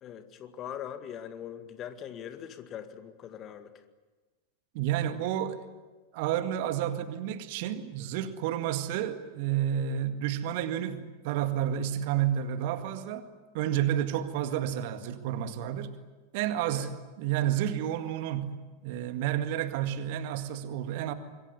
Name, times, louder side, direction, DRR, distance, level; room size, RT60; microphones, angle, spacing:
voice 1, 0.0-3.7 16.6-16.9, left 9 dB, 30° left, 9 dB, 2.0 m, -41 dB
voice 2, 4.7-5.7 6.1-13.3 13.5-15.9 16.3-16.9 17.2-18.6 18.8-21.1, right 10 dB, 50° right, 9 dB, 2.0 m, -30 dB
26.0 x 22.0 x 9.8 m, 1.3 s
figure-of-eight pair, 90°, 0 cm